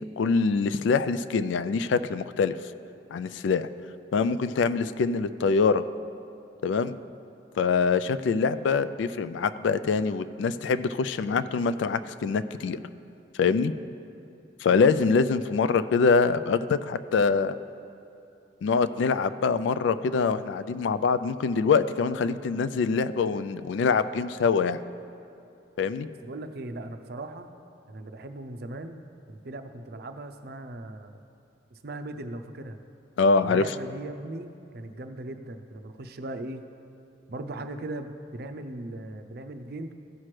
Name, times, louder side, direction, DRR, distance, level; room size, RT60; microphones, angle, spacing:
voice 1, 0.0-2.6 3.1-3.7 4.1-5.8 6.6-7.0 7.6-12.8 13.4-13.7 14.6-17.5 18.6-24.8 25.8-26.1 33.2-33.7, left 5 dB, 75° left, 13 dB, 0.3 m, -24 dB
voice 2, 26.2-27.5 27.9-29.0 29.3-31.2 31.7-32.8 33.4-36.7 37.3-39.9, right 2 dB, 55° right, 7 dB, 0.5 m, -38 dB
15.5 x 5.9 x 3.2 m, 2.7 s
head